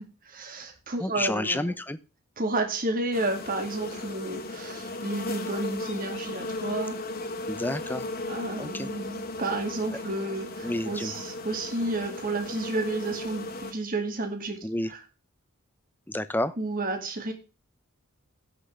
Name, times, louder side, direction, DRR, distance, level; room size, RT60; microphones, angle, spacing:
voice 1, 0.0-1.8 2.4-7.0 8.3-15.0 16.6-17.3, right 2 dB, 40° right, 4 dB, 2.2 m, -31 dB
voice 2, 1.0-2.0 7.5-8.1 8.6-8.9 10.6-11.1 14.6-14.9 16.1-16.5, left 1 dB, 10° left, 13 dB, 0.6 m, -30 dB
sound 1, 3.1-13.7, left 2 dB, 45° left, 1.9 m, -36 dB
16.5 x 6.2 x 3.3 m, 0.32 s
head